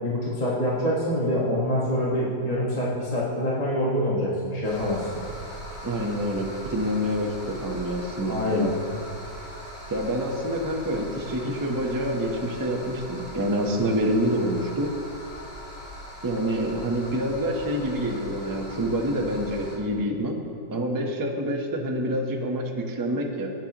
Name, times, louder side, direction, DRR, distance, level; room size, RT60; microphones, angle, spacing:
voice 1, 0.0-5.1 8.3-8.7, left 1 dB, 20° left, -6 dB, 1.3 m, -25 dB
sound 1, 4.6-19.8, equal, 45° left, 3.2 m, -41 dB
voice 2, 5.8-8.7 9.9-14.9 16.2-20.4 20.7-23.5, equal, 20° right, 1 dB, 0.5 m, -27 dB
17.0 x 9.0 x 3.0 m, 2.5 s
omnidirectional pair, 2.1 m